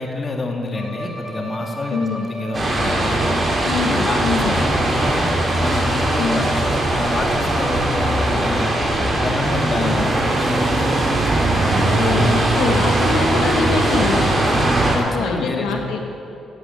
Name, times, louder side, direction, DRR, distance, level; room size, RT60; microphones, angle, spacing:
voice 1, 0.0-3.4 3.8-5.3 5.6-8.7 9.2-11.0 14.4-16.0, left 2 dB, 35° left, 2 dB, 2.1 m, -28 dB
Bowed string instrument, 0.7-9.0, right 1 dB, 5° left, 3.2 m, -34 dB
voice 2, 1.9-2.3 3.6-4.5 6.2-6.4 9.7-10.1 11.3-14.4 15.1-16.0, left 5 dB, 90° left, 3 dB, 1.3 m, -24 dB
sound 1, 2.5-15.0, right 1 dB, 30° right, 3.2 m, -19 dB
12.5 x 8.1 x 9.3 m, 2.9 s
cardioid pair, 90°, 0 cm